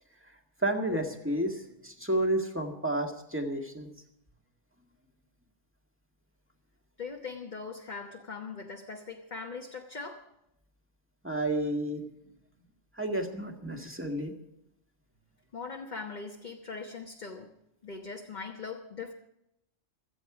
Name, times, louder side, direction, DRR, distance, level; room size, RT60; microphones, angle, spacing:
voice 1, 0.6-3.9 11.2-12.0 13.0-14.3, right 1 dB, 10° right, 3 dB, 1.8 m, -31 dB
voice 2, 7.0-10.3 15.5-17.5 17.8-19.1, left 4 dB, 40° left, 2 dB, 1.1 m, -40 dB
16.5 x 14.0 x 5.0 m, 0.82 s
omnidirectional pair, 1.3 m